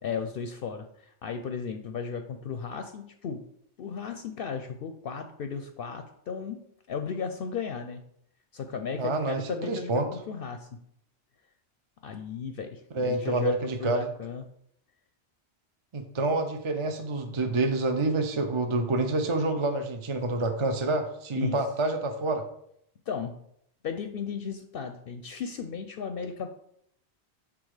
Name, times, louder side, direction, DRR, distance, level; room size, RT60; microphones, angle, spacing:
voice 1, 0.0-3.4 3.8-6.6 6.9-8.0 8.5-10.8 12.0-13.5 13.8-14.4 21.3-21.6 23.1-23.4 23.8-26.5, left 6 dB, 65° left, 7 dB, 0.7 m, -35 dB
voice 2, 9.0-10.1 12.9-14.1 15.9-22.4, right 2 dB, 40° right, 5 dB, 0.5 m, -28 dB
6.2 x 3.6 x 4.8 m, 0.71 s
omnidirectional pair, 1.1 m